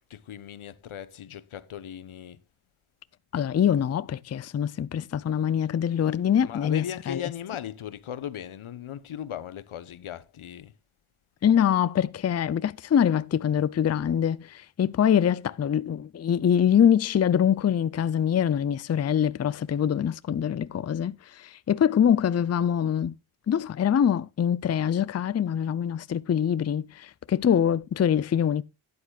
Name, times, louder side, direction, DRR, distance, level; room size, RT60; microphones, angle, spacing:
voice 1, 0.1-2.4 6.4-10.7, left 9 dB, 85° left, 1.0 m, -37 dB
voice 2, 3.3-7.2 11.4-23.1 23.5-28.6, left 9 dB, 35° left, 0.4 m, -24 dB
13.0 x 9.6 x 2.3 m
wide cardioid pair, 110°, 48 cm